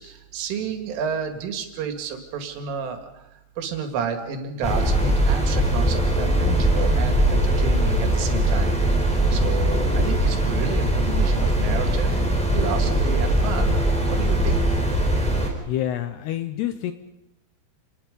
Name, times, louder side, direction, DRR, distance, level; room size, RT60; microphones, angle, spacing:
voice 1, 0.0-3.2 3.6-8.8 9.3-12.2 12.5-14.6, right 6 dB, 85° right, 5 dB, 4.6 m, -31 dB
sound 1, 4.6-15.5, right 1 dB, ahead, 3.3 m, -21 dB
voice 2, 15.7-16.9, left 12 dB, 75° left, 9 dB, 2.5 m, -27 dB
28.5 x 20.0 x 5.3 m, 0.95 s
omnidirectional pair, 5.6 m